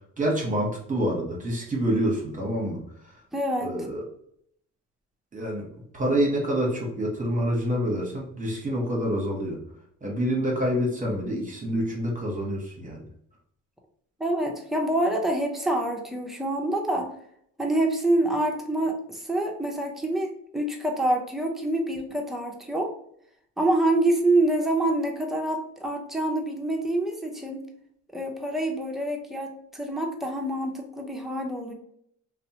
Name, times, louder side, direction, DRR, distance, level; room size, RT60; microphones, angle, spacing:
voice 1, 0.2-2.8 3.6-4.0 5.3-9.6 10.0-13.0, equal, 25° right, -1 dB, 0.9 m, -27 dB
voice 2, 3.3-3.7 14.2-17.1 17.6-22.9 23.6-27.6 28.1-31.7, right 1 dB, ahead, 1 dB, 0.5 m, -26 dB
2.8 x 2.0 x 2.8 m, 0.68 s
cardioid pair, 90°, 30 cm